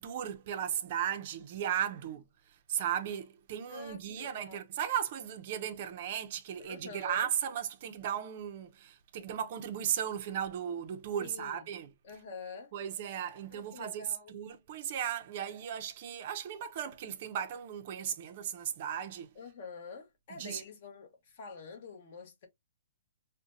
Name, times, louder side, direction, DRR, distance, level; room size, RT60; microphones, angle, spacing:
voice 1, 0.0-2.2 2.7-11.9 12.7-14.0 14.3-19.3 20.3-20.6, right 9 dB, 35° right, 0.5 m, -36 dB
voice 2, 3.7-4.6 6.6-7.3 11.2-11.7 12.0-12.7 13.5-14.3 19.3-22.5, left 4 dB, 40° left, 1.1 m, -47 dB
3.9 x 2.2 x 2.6 m
hypercardioid pair, 170°, 0 cm